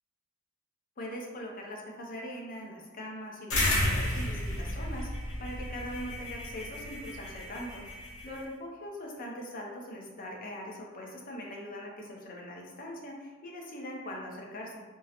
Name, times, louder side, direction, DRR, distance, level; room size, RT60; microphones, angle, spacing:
voice 1, 1.0-7.9 8.2-14.8, equal, 45° left, -1 dB, 0.6 m, -41 dB
sound 1, 3.5-8.4, left 1 dB, 80° left, 0.8 m, -32 dB
3.7 x 2.0 x 2.8 m, 1.4 s
head